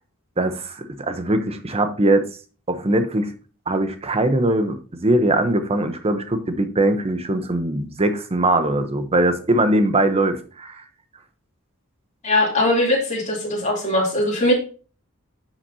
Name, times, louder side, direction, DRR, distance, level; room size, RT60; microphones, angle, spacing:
voice 1, 0.4-2.2 2.7-3.3 3.7-10.8, right 1 dB, 30° right, 9 dB, 0.8 m, -21 dB
voice 2, 12.2-14.5, left 1 dB, 35° left, -2 dB, 2.9 m, -20 dB
10.0 x 5.9 x 2.7 m, 0.37 s
head